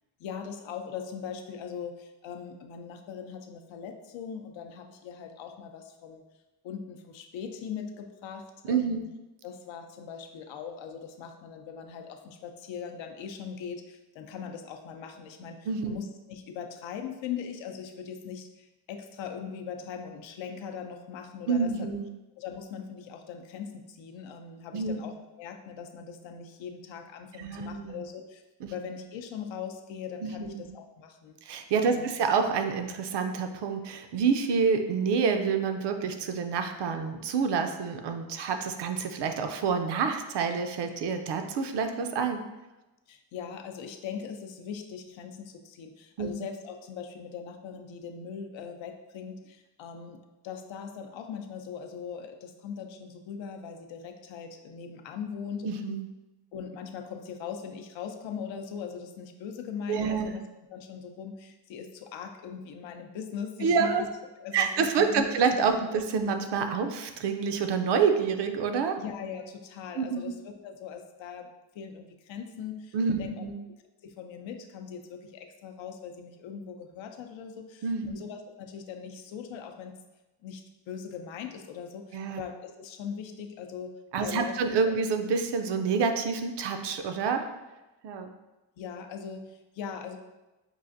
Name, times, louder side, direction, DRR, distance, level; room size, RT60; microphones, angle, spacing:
voice 1, 0.2-6.2 6.6-9.0 9.4-15.6 15.8-21.9 22.4-32.1 43.1-50.2 50.4-55.7 56.5-60.4 60.7-64.1 64.4-65.3 65.7-65.8 69.0-73.5 74.0-79.9 80.4-83.9 84.2-84.6 84.9-85.0 88.8-90.2, left 7 dB, 80° left, 5 dB, 0.6 m, -40 dB
voice 2, 8.6-9.0 15.7-16.0 21.5-22.1 24.7-25.0 27.4-28.0 28.6-28.7 30.2-30.7 31.4-42.4 46.2-46.3 55.6-56.0 59.9-60.3 63.6-64.0 64.5-69.0 69.9-70.3 72.9-73.6 77.8-78.1 82.1-82.4 84.1-87.5 88.0-88.3, right 5 dB, 65° right, 6 dB, 0.5 m, -28 dB
5.5 x 2.4 x 2.5 m, 1.1 s
cardioid pair, 130°, 44 cm